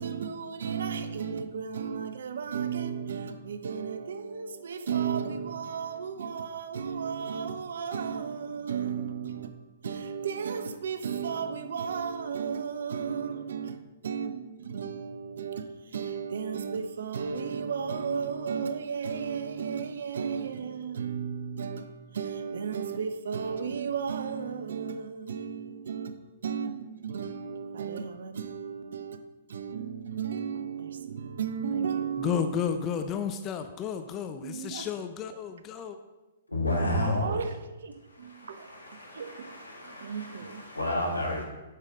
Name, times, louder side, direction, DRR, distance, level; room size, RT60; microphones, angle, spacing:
voice 1, 0.0-29.2 29.5-32.8 34.4-34.9 36.7-38.7 39.1-39.5 39.8-40.6, right 6 dB, 60° right, 0.6 m, -34 dB
voice 2, 32.2-36.0, left 8 dB, 25° left, 0.4 m, -32 dB
voice 3, 36.5-37.3 38.1-41.4, left 1 dB, 85° left, 1.9 m, -31 dB
8.0 x 5.6 x 3.9 m
figure-of-eight pair, 115°, 0 cm